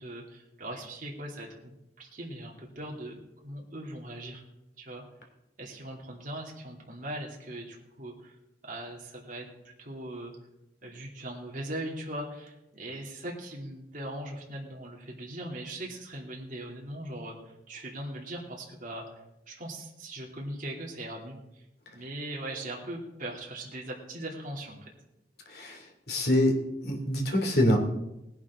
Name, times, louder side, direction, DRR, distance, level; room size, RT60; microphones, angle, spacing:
voice 1, 0.0-4.4 4.8-5.0 5.6-8.4 8.6-10.3 10.8-19.1 19.5-21.6 21.9-24.9, right 1 dB, 50° right, -2 dB, 2.6 m, -40 dB
voice 2, 25.5-26.6 26.8-27.8, left 1 dB, 60° left, 2 dB, 2.6 m, -25 dB
19.0 x 11.0 x 3.6 m, 0.89 s
head